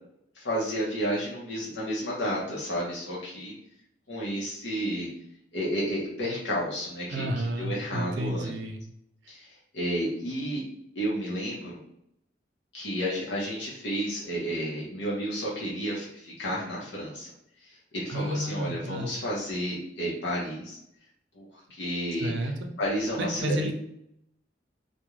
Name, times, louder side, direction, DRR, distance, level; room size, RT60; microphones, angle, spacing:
voice 1, 0.3-3.5 4.1-5.1 5.5-8.5 9.3-10.6 11.0-11.8 12.7-17.3 17.6-20.8 21.3-23.7, equal, 85° left, -5 dB, 0.7 m, -31 dB
voice 2, 7.1-8.8 18.1-19.1 22.2-22.5 23.2-23.7, right 1 dB, 85° right, 4 dB, 0.5 m, -31 dB
2.4 x 2.1 x 3.0 m, 0.76 s
head